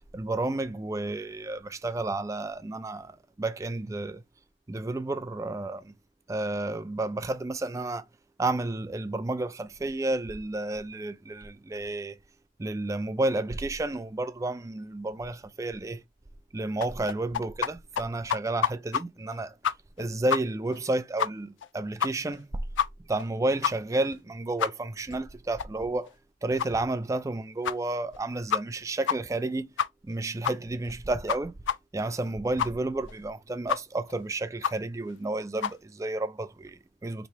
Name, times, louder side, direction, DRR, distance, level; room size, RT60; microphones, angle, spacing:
voice 1, 0.1-3.1 3.4-4.2 4.7-5.9 6.3-8.0 8.4-12.2 12.6-16.0 16.5-19.5 20.0-22.5 23.1-26.1 26.4-29.7 30.0-31.6 31.9-37.3, right 2 dB, 15° right, 0.3 m, -31 dB
sound 1, 16.8-17.7 18.0-18.1 18.3-19.0 19.3-19.4 19.6-20.0 20.3-20.4 20.7-20.8 21.2-21.3 21.6-21.7 22.0-22.4 22.8-22.9 23.2-23.3 23.6-23.7 24.1-24.2 24.6-24.7 25.1-25.2 25.6-25.7 26.1-26.2 26.6-26.7 27.1-27.2 27.6-27.8 28.1-28.2 28.5-28.8 29.1-29.2 29.4-29.5 29.8-30.1 30.4-30.6 30.9-31.0 31.3-31.4 31.7-31.8 32.1-32.2 32.6-32.7 33.1-33.2 33.7-33.8 34.1-34.2 34.6-34.7 35.1-35.2 35.6-35.7, left 8 dB, 80° left, 0.3 m, -27 dB
3.0 x 2.7 x 4.5 m
head